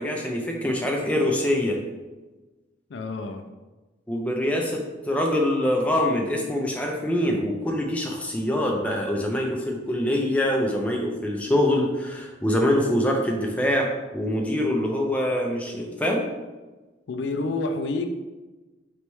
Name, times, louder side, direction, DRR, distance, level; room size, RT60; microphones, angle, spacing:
voice 1, 0.0-1.8 4.1-16.3, left 1 dB, 5° left, 0 dB, 0.4 m, -24 dB
voice 2, 2.9-3.4 17.1-18.1, left 3 dB, 75° left, 6 dB, 0.4 m, -28 dB
4.1 x 3.3 x 3.0 m, 1.2 s
head